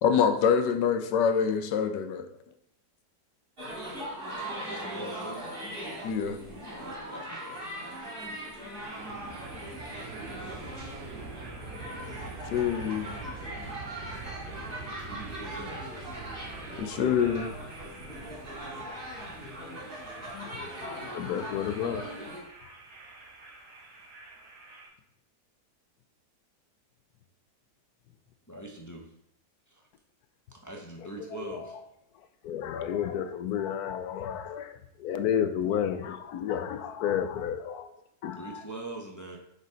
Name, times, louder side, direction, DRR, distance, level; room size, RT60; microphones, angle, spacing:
voice 1, 0.0-2.3 6.0-6.4 12.5-13.1 16.8-17.6, left 7 dB, 85° left, 1.4 m, -25 dB
sound 1, 3.6-22.4, right 1 dB, 30° right, 2.1 m, -40 dB
voice 2, 4.7-5.5 6.8-7.6 15.0-15.9 28.5-29.1 29.7-29.9 30.5-31.8 38.3-39.4, right 2 dB, 20° left, 0.5 m, -42 dB
sound 2, 8.9-24.9, right 3 dB, 70° right, 2.3 m, -45 dB
voice 3, 20.8-22.0 31.4-31.5 32.4-37.9 38.2-38.6, left 9 dB, 70° left, 1.1 m, -31 dB
6.6 x 5.2 x 5.1 m
omnidirectional pair, 1.8 m